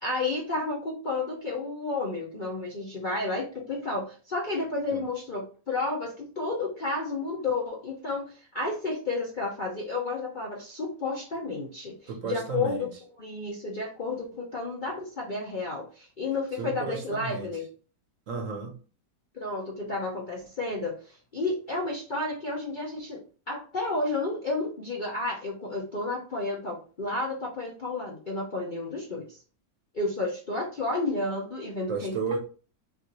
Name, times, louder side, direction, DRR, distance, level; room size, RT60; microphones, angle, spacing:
voice 1, 0.0-12.9 13.2-17.6 19.3-23.2 23.5-29.4 29.9-32.2, left 3 dB, 45° left, 0.6 m, -31 dB
voice 2, 12.1-12.9 16.6-17.5 18.3-18.7 31.9-32.4, right 5 dB, 60° right, 1.1 m, -33 dB
5.8 x 2.5 x 3.0 m
omnidirectional pair, 1.8 m